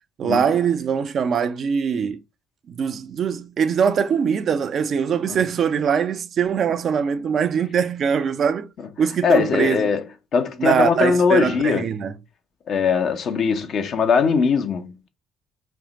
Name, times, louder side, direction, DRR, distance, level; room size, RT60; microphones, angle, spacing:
voice 1, 0.2-2.2 2.7-8.7 9.0-9.8 10.6-12.1, right 7 dB, 50° right, 0.5 m, -22 dB
voice 2, 9.2-10.0 10.3-11.9 12.7-15.1, left 5 dB, 55° left, 0.8 m, -20 dB
4.6 x 2.8 x 3.7 m
hypercardioid pair, 55°, 0 cm